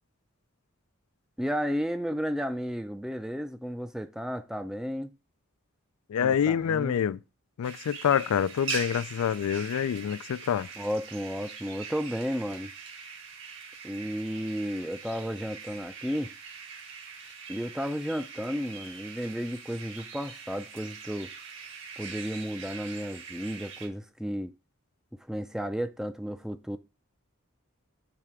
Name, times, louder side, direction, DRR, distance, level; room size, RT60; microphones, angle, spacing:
voice 1, 1.4-5.1 6.2-7.0 10.8-12.7 13.8-16.3 17.5-21.3 22.0-24.5 25.1-26.8, equal, 5° right, 0.4 m, -33 dB
voice 2, 6.1-7.2 7.6-10.7, left 8 dB, 85° left, 0.3 m, -26 dB
sound 1, 7.6-23.9, right 5 dB, 55° right, 1.5 m, -42 dB
8.7 x 3.3 x 4.8 m
head